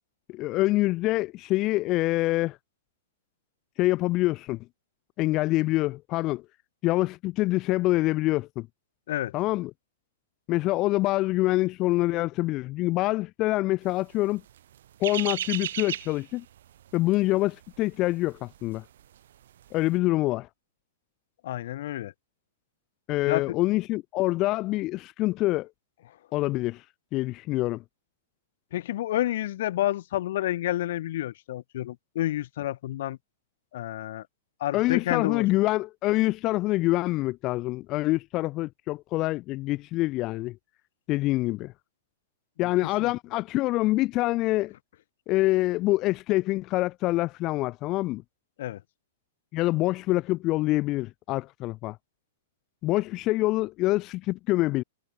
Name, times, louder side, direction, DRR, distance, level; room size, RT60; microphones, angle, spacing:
voice 1, 0.3-2.6 3.8-4.6 5.2-6.4 6.8-8.7 9.3-9.7 10.5-14.4 15.0-16.4 16.9-18.8 19.7-20.5 23.1-25.7 26.3-26.8 27.1-27.8 34.7-40.6 41.1-41.7 42.6-44.7 45.3-48.2 49.5-52.0 52.8-54.8, left 18 dB, 40° left, 0.8 m, -26 dB
sound 1, 14.1-19.2 19.4-19.7, right 11 dB, 70° right, 0.9 m, -35 dB
voice 2, 21.4-22.1 23.3-23.6 28.7-33.2 33.7-34.2 34.6-35.5 43.0-43.1 48.6-48.8, left 13 dB, 65° left, 1.3 m, -29 dB
hypercardioid pair, 120°, 0 cm